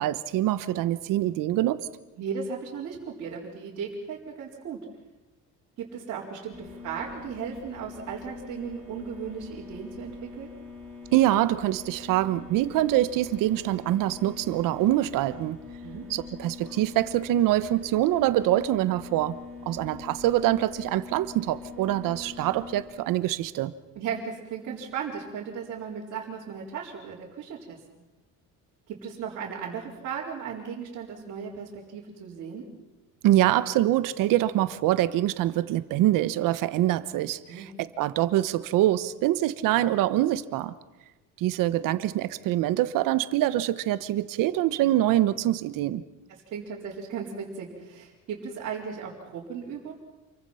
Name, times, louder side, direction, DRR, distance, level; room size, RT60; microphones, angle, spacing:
voice 1, 0.0-1.9 11.1-15.6 16.1-19.4 19.7-23.7 33.2-40.7 41.4-46.0, right 14 dB, 75° right, 13 dB, 1.2 m, -24 dB
voice 2, 2.2-4.8 5.8-10.5 15.8-16.1 24.0-27.8 28.9-32.7 37.5-37.7 46.5-49.9, right 6 dB, 50° right, -6 dB, 4.2 m, -36 dB
sound 1, 6.5-22.8, left 4 dB, 5° left, 5.1 m, -43 dB
28.5 x 23.5 x 5.8 m, 1.1 s
cardioid pair, 175°, 33 cm